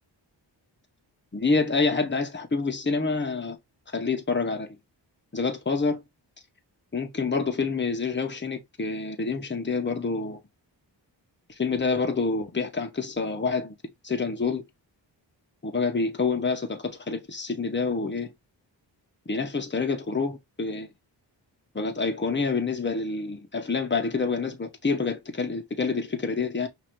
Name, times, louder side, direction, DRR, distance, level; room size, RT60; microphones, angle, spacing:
voice 1, 1.3-3.6 3.9-4.8 5.3-6.0 6.9-10.4 11.6-13.7 14.0-14.6 15.6-18.3 19.3-20.9 21.7-26.7, left 4 dB, 25° left, 1.1 m, -27 dB
5.7 x 2.9 x 3.2 m
wide cardioid pair, 100°, 45 cm